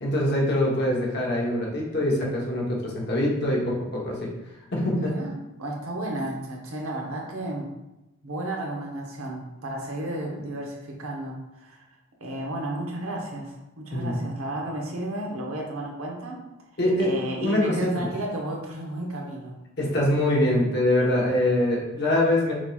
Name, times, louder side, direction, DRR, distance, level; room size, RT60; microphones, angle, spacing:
voice 1, 0.0-4.3 4.7-5.1 13.9-14.3 16.8-17.1 17.4-18.0 19.8-22.5, left 1 dB, 50° left, -3 dB, 1.1 m, -24 dB
voice 2, 4.9-5.3 5.6-7.7 8.2-11.9 12.2-16.4 17.0-19.6, right 1 dB, 80° right, -1 dB, 0.9 m, -33 dB
6.1 x 3.0 x 2.4 m, 0.96 s
head